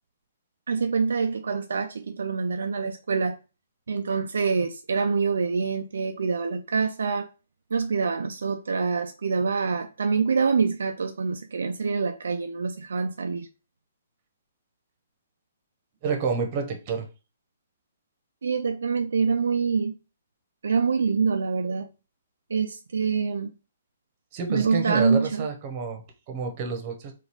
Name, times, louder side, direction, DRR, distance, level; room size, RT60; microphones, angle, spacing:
voice 1, 0.7-3.4 3.9-7.3 7.7-13.5 18.4-20.0 20.6-21.9 22.5-23.5 24.5-25.5, right 5 dB, 70° right, 0.3 m, -25 dB
voice 2, 16.0-17.1 24.3-27.1, right 5 dB, 40° right, 0.9 m, -29 dB
3.9 x 2.4 x 2.9 m
figure-of-eight pair, 130°, 0 cm